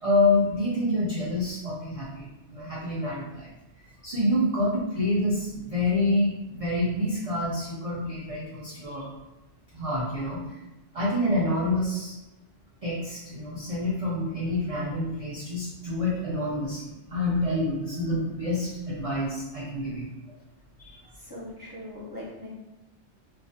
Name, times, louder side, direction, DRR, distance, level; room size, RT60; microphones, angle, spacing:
voice 1, 0.0-3.5 4.0-9.1 9.7-10.6 10.9-12.1 12.8-20.1 20.8-21.0, left 1 dB, 60° right, -6 dB, 0.3 m, -27 dB
voice 2, 21.1-22.5, left 1 dB, 30° left, -9 dB, 0.5 m, -40 dB
2.3 x 2.1 x 2.6 m, 0.99 s
omnidirectional pair, 1.2 m